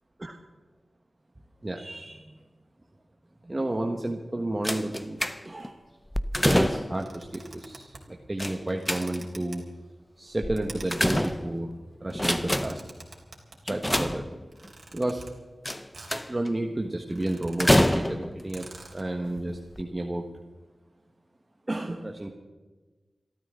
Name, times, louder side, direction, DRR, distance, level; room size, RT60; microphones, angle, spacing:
voice 1, 1.6-2.3 3.4-5.8 6.3-9.6 10.2-11.7 12.0-12.8 13.6-14.2 14.9-15.3 16.3-18.7 18.9-20.3 21.7-22.3, right 1 dB, 20° right, 2 dB, 1.4 m, -31 dB
sound 1, 4.6-5.7 6.1-7.1 8.4-9.4 10.4-11.7 12.1-12.9 13.7-14.7 15.7-16.5 17.6-18.4 19.2-19.4 19.7-19.8, left 1 dB, 10° left, 0.6 m, -26 dB
sound 2, 6.9-8.1 8.7-9.6 10.6-11.3 12.2-13.6 14.5-15.3 15.9-16.3 16.6-16.7 17.0-17.9 18.2-18.3 18.5-19.1, right 3 dB, 45° right, 3.5 m, -47 dB
26.5 x 13.5 x 3.8 m, 1.3 s
wide cardioid pair, 110°, 0 cm